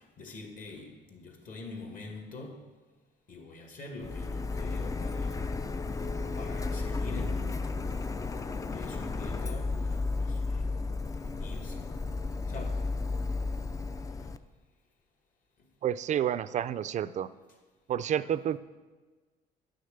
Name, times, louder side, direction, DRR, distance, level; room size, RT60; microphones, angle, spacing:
voice 1, 0.0-2.6 3.3-5.4 6.3-8.1 8.7-10.7 11.4-11.9 12.5-12.8 14.0-14.3, left 3 dB, 55° left, 2 dB, 2.2 m, -45 dB
Printer, 4.0-14.4, left 3 dB, 20° left, 0.4 m, -33 dB
voice 2, 15.8-17.3 17.9-18.6, right 10 dB, 45° right, 14 dB, 0.4 m, -29 dB
10.5 x 6.5 x 6.7 m, 1.3 s
cardioid pair, 110°, 17 cm